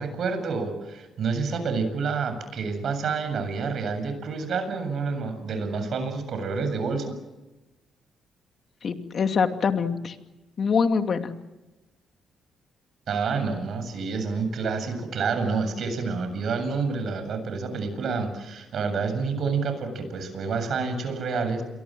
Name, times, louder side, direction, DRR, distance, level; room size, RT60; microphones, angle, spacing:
voice 1, 0.0-7.2 13.1-21.6, right 4 dB, 65° right, 8 dB, 7.5 m, -28 dB
voice 2, 8.8-10.1 10.6-11.3, left 5 dB, 55° left, 6 dB, 2.6 m, -24 dB
29.0 x 23.0 x 7.8 m, 1.1 s
cardioid pair, 70°, 0 cm